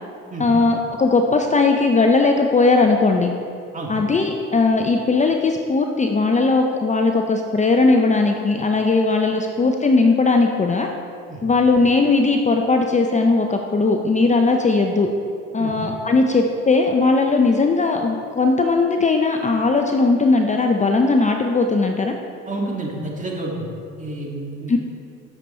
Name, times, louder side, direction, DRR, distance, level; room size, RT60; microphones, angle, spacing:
voice 1, 0.4-3.3 3.9-10.9 11.4-15.1 15.5-22.1 24.7-24.8, left 3 dB, 25° left, 3 dB, 0.6 m, -18 dB
voice 2, 22.5-23.7 24.0-24.8, right 2 dB, 25° right, -2 dB, 2.1 m, -29 dB
8.0 x 7.0 x 4.3 m, 2.4 s
supercardioid pair, 70°, 30 cm